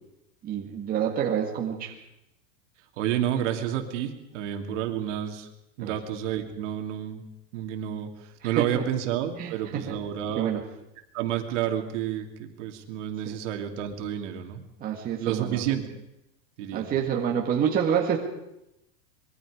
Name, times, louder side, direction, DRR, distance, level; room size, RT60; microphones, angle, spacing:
voice 1, 0.4-1.9 5.8-5.9 8.4-8.8 9.4-10.0 10.4-10.6 13.3-13.4 14.8-15.6 16.7-18.2, right 8 dB, 20° right, 0 dB, 1.9 m, -27 dB
voice 2, 3.0-5.5 5.8-7.2 7.5-10.5 11.1-14.6 15.2-15.9 16.6-16.9, right 10 dB, 55° right, 4 dB, 2.8 m, -30 dB
25.5 x 22.5 x 5.0 m, 0.89 s
supercardioid pair, 175°, 43 cm